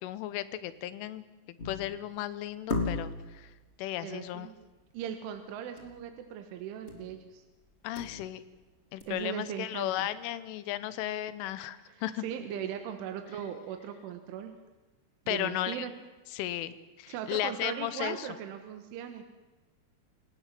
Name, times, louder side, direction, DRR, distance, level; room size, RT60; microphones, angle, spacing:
voice 1, 0.0-3.5 3.8-4.5 7.8-8.4 8.9-12.2 15.3-15.9 16.3-18.3, left 13 dB, 85° left, 15 dB, 3.6 m, -35 dB
sound 1, 1.6-2.0 2.7-3.4 5.8-6.0 6.3-6.4 6.9-7.2 7.6-8.6 9.0-9.1, left 3 dB, 20° left, 2.3 m, -35 dB
voice 2, 4.0-4.5 4.9-7.4 9.1-10.1 11.9-14.5 15.3-15.9 17.1-19.2, right 9 dB, 80° right, 7 dB, 3.9 m, -39 dB
29.0 x 18.5 x 7.7 m, 1.2 s
omnidirectional pair, 5.5 m